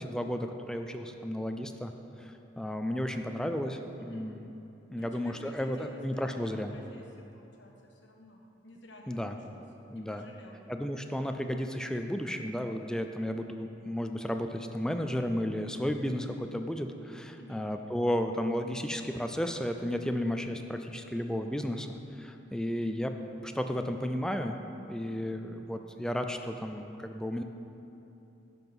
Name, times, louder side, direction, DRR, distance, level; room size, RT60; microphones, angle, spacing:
voice 1, 0.0-1.9 2.2-4.4 4.9-6.7 9.1-9.4 9.9-10.2 10.7-23.2 23.4-24.6 24.9-27.4, equal, 5° left, 6 dB, 0.4 m, -33 dB
voice 2, 4.0-4.3 4.9-10.6 17.4-17.7, left 1 dB, 70° left, 0 dB, 1.3 m, -52 dB
11.0 x 5.5 x 6.0 m, 2.9 s
head